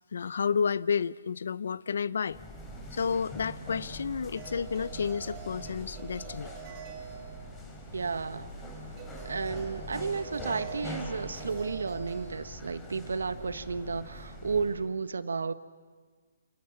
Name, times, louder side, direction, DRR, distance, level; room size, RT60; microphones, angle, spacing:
voice 1, 0.1-2.4 2.9-6.5, left 6 dB, 65° left, 19 dB, 0.8 m, -31 dB
sound 1, 2.3-14.9, equal, 15° left, 4.8 m, -43 dB
sound 2, 4.4-7.7 8.9-12.4, right 6 dB, 25° right, 6.9 m, -45 dB
voice 2, 7.9-8.5 9.2-15.5, right 4 dB, 85° right, 12 dB, 1.4 m, -33 dB
29.5 x 28.0 x 7.1 m, 1.5 s
hypercardioid pair, 160°, 0 cm